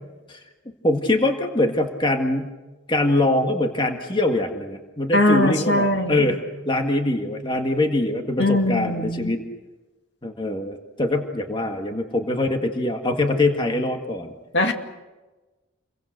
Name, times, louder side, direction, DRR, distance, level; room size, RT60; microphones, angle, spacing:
voice 1, 0.8-2.5 2.9-6.4 6.7-9.4 10.2-14.3, left 2 dB, 25° left, 4 dB, 1.8 m, -23 dB
voice 2, 5.1-6.3 8.4-9.4 14.5-14.7, left 1 dB, 60° left, 5 dB, 2.4 m, -21 dB
29.5 x 23.0 x 6.7 m, 1.2 s
head